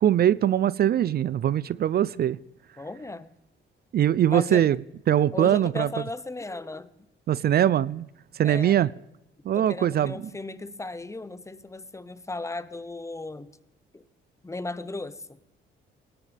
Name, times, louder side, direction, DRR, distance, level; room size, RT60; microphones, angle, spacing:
voice 1, 0.0-2.4 3.9-4.8 5.1-5.9 7.3-8.1 8.3-8.9 9.5-10.3, right 11 dB, 50° right, 0.5 m, -22 dB
voice 2, 2.8-3.3 4.3-4.7 5.3-6.9 8.4-8.8 9.5-13.5 13.9-14.0 14.4-15.4, left 2 dB, 15° left, 0.8 m, -36 dB
20.0 x 18.0 x 3.4 m
cardioid pair, 90°, 20 cm